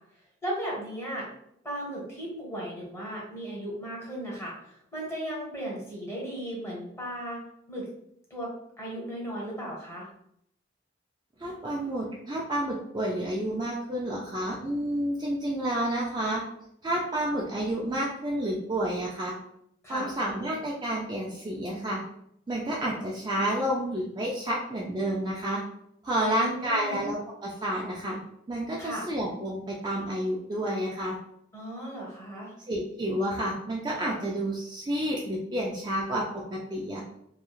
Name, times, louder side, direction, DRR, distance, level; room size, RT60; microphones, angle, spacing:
voice 1, 0.4-1.3 1.6-7.4 7.7-7.8 8.3-8.5 8.8-10.1 19.8-20.1 26.3-27.0 28.8-29.1 31.5-32.5, right 1 dB, 15° left, -5 dB, 1.1 m, -36 dB
voice 2, 11.4-16.4 16.8-19.3 19.9-22.0 22.5-25.6 26.0-27.2 27.4-28.2 28.5-31.2 32.7-36.2 36.5-37.0, right 1 dB, 20° right, -3 dB, 0.3 m, -30 dB
3.0 x 2.3 x 2.3 m, 0.73 s
head